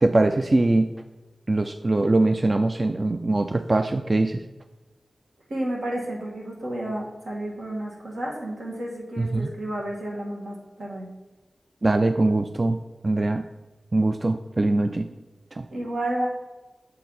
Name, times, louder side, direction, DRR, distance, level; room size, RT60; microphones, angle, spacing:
voice 1, 0.0-0.9 1.5-4.4 9.2-9.5 11.8-13.5 13.9-15.1 15.5-15.7, right 2 dB, 40° right, 7 dB, 0.3 m, -22 dB
voice 2, 5.5-11.1 15.7-16.3, right 1 dB, 85° right, -3 dB, 1.7 m, -31 dB
6.3 x 4.3 x 4.0 m, 1.2 s
cardioid pair, 50°, 0 cm